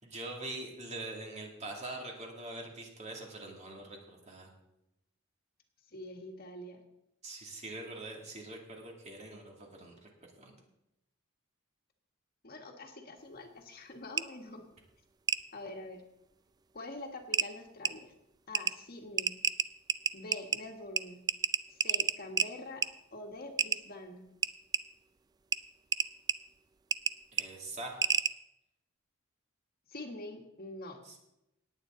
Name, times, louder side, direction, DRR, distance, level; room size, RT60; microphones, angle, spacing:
voice 1, 0.0-4.5 7.2-10.1 10.4-10.5 27.3-28.0 31.0-31.2, right 2 dB, 35° right, 0 dB, 2.4 m, -43 dB
voice 2, 5.9-6.8 12.4-14.6 15.5-16.0 16.7-18.1 18.5-19.3 20.1-21.2 21.7-24.2 29.9-31.0, left 2 dB, 50° left, 3 dB, 1.6 m, -45 dB
sound 1, 14.2-14.3 15.3-15.4 16.8-16.9 17.3-17.5 17.9-18.0 18.5-18.7 19.2-20.6 21.0-21.1 21.3-22.5 22.8-22.9 23.6-23.8 24.4-24.8 25.5-25.6 25.9-26.3 26.9-27.1 27.4-27.5 28.0-28.3, right 6 dB, 20° right, 0.3 m, -29 dB
18.0 x 8.8 x 3.8 m, 0.88 s
head